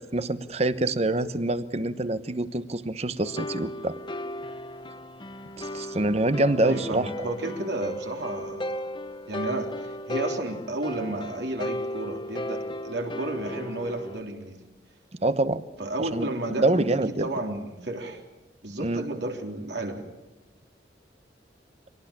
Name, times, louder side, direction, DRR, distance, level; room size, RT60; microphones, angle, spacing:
voice 1, 0.0-4.0 5.6-7.1 15.2-15.6 16.1-17.3 18.8-19.0, right 2 dB, 35° right, 13 dB, 1.0 m, -26 dB
sound 1, 3.2-14.2, left 1 dB, 25° left, 0.9 m, -36 dB
voice 2, 6.6-8.8 9.3-14.6 15.8-18.2 18.6-20.1, right 2 dB, 75° right, 2 dB, 3.5 m, -32 dB
25.0 x 18.0 x 8.7 m, 1.1 s
head